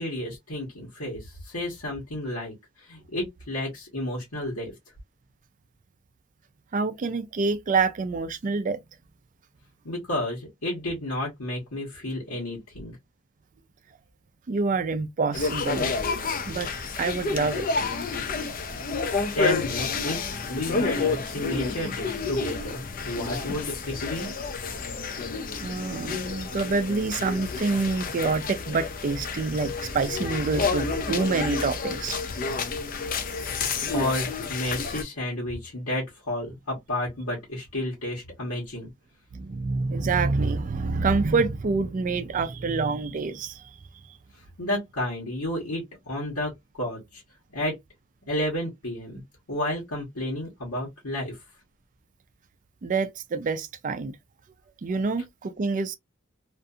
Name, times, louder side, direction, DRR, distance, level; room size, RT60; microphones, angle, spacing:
voice 1, 0.0-4.7 9.8-13.0 19.4-24.3 33.8-38.9 44.3-47.2 47.5-47.8 48.3-49.2 49.5-51.4, left 1 dB, 80° left, 1.2 m, -31 dB
voice 2, 6.7-8.8 14.5-15.9 16.5-16.7 17.0-17.7 25.6-32.2 39.3-43.6 52.8-54.1 54.8-55.9, right 4 dB, 35° right, 0.4 m, -27 dB
sound 1, 15.3-35.0, left 4 dB, 40° left, 0.5 m, -30 dB
2.6 x 2.5 x 2.3 m
head